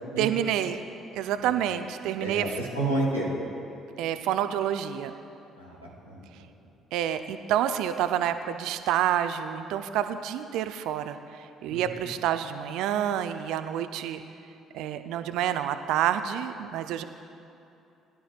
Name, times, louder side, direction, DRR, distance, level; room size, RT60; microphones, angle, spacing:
voice 1, 0.2-0.8 1.1-2.5 4.0-5.1 6.9-14.2 14.7-17.0, right 10 dB, 60° right, 9 dB, 0.6 m, -28 dB
voice 2, 2.2-3.3 5.6-6.2 11.7-11.8, right 2 dB, 90° left, -7 dB, 2.8 m, -30 dB
21.5 x 11.5 x 2.4 m, 2.7 s
figure-of-eight pair, 45°, 0 cm